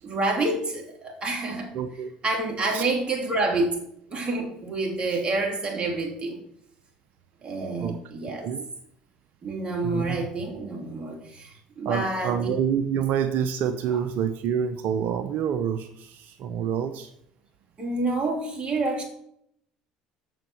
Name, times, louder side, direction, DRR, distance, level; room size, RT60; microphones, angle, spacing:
voice 1, 0.0-1.7 2.2-3.8 4.1-6.4 7.4-8.5 9.4-12.6 13.9-14.0 17.8-19.0, right 2 dB, 35° right, 1 dB, 3.0 m, -28 dB
voice 2, 1.7-2.1 2.7-2.8 7.8-8.0 8.4-8.6 9.8-10.2 11.8-17.1, right 8 dB, 60° right, 10 dB, 0.6 m, -27 dB
7.1 x 6.0 x 6.8 m, 0.72 s
hypercardioid pair, 70°, 3 cm